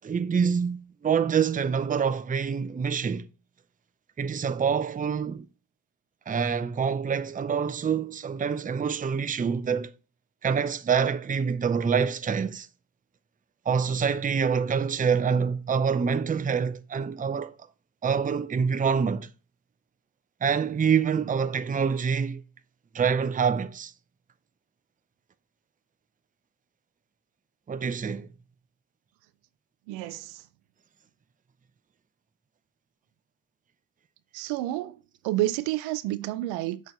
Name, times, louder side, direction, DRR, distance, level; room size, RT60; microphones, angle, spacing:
voice 1, 0.0-3.2 4.2-5.4 6.3-9.9 10.4-12.7 13.7-17.5 18.0-19.3 20.4-22.4 22.9-23.9 27.7-28.3, right 6 dB, 15° right, 0.6 m, -26 dB
voice 2, 29.9-30.3 34.3-35.0 35.2-36.8, right 15 dB, 75° right, 0.7 m, -29 dB
6.5 x 6.3 x 4.0 m
hypercardioid pair, 65°, 47 cm